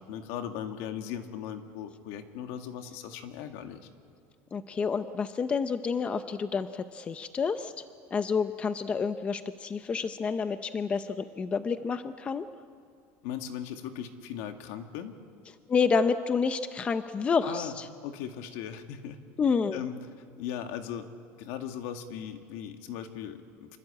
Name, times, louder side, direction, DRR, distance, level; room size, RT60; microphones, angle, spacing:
voice 1, 0.0-3.8 13.2-15.1 17.4-17.7 18.0-19.2 19.7-20.0 20.4-21.1 21.4-23.8, left 9 dB, 70° left, 6 dB, 2.1 m, -38 dB
voice 2, 4.5-7.7 8.1-12.5 15.7-17.9 19.4-19.8, left 5 dB, 15° left, 10 dB, 0.6 m, -29 dB
27.0 x 24.0 x 8.7 m, 2.1 s
cardioid pair, 175°, 7 cm